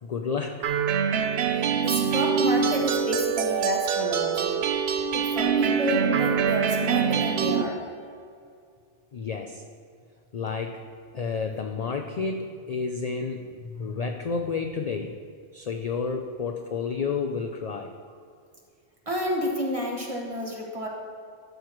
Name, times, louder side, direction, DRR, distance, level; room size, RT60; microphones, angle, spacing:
voice 1, 0.0-0.7 9.1-9.6 10.3-10.8 11.1-15.2 15.5-17.9, left 5 dB, 55° left, 4 dB, 0.4 m, -30 dB
sound 1, 0.6-7.6, right 7 dB, 65° right, 0.8 m, -24 dB
voice 2, 1.5-4.6 5.1-7.8 19.1-20.9, equal, 30° right, -2 dB, 1.5 m, -30 dB
13.0 x 7.8 x 3.1 m, 2.3 s
omnidirectional pair, 1.2 m